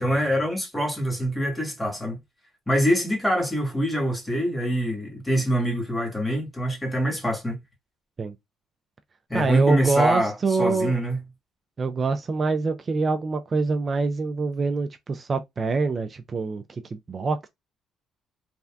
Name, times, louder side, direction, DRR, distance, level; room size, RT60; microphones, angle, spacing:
voice 1, 0.0-2.2 2.7-7.6 9.3-11.2, equal, 10° left, 1.4 m, -25 dB
voice 2, 9.3-10.9 11.8-17.5, right 4 dB, 35° right, 0.3 m, -25 dB
3.3 x 2.4 x 2.2 m
cardioid pair, 85°, 0 cm